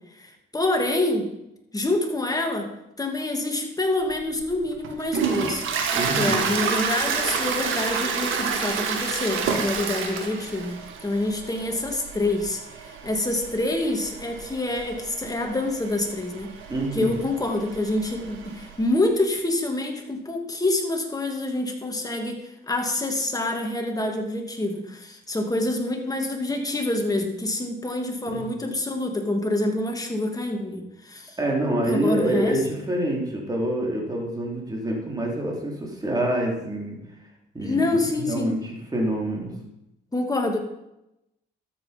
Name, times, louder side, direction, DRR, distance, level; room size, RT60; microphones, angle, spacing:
voice 1, 0.2-1.3 1.7-2.7 3.0-5.6 6.2-10.8 11.0-16.5 16.9-31.4 31.8-32.5 37.6-38.5 40.1-40.6, left 2 dB, 20° left, 3 dB, 2.4 m, -26 dB
Toilet flush, 4.1-18.8, right 6 dB, 80° right, 1.9 m, -30 dB
voice 2, 5.9-6.5 16.7-17.2 28.3-28.5 31.4-37.0 37.5-37.8 38.2-39.5, right 1 dB, 20° right, -1 dB, 3.8 m, -26 dB
12.5 x 8.1 x 5.3 m, 0.87 s
cardioid pair, 90°, 20 cm